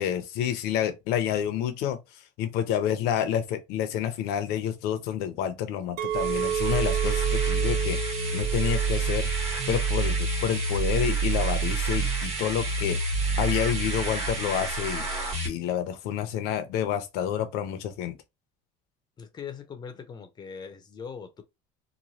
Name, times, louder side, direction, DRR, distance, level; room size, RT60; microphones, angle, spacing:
voice 1, 0.0-2.0 2.4-8.0 8.3-9.3 9.7-13.0 13.4-15.1 15.4-18.2, left 9 dB, 65° left, 0.7 m, -28 dB
Chink clink, 6.0-11.2, right 10 dB, 65° right, 0.4 m, -33 dB
sound 1, 6.1-15.5, right 4 dB, 35° right, 1.2 m, -28 dB
voice 2, 13.2-14.0 19.2-21.4, left 6 dB, 25° left, 0.6 m, -42 dB
3.0 x 2.2 x 2.7 m
cardioid pair, 135°, 18 cm